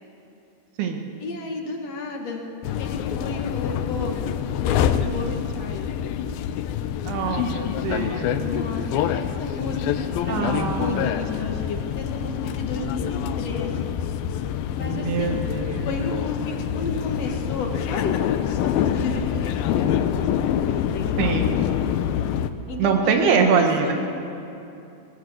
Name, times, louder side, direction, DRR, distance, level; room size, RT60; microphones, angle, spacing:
voice 1, 1.2-2.5 2.8-4.2 4.6-5.9 8.4-13.9 14.7-15.4 15.8-20.3 20.7-21.4 22.7-23.9, left 2 dB, 50° left, 1 dB, 2.3 m, -32 dB
sound 1, 2.6-22.5, left 9 dB, 75° left, 2.3 m, -26 dB
voice 2, 7.1-8.7 10.3-11.1 14.8-15.9 21.2-21.6 22.8-23.9, right 6 dB, 75° right, 4 dB, 3.5 m, -24 dB
20.0 x 19.0 x 8.0 m, 2.7 s
omnidirectional pair, 4.7 m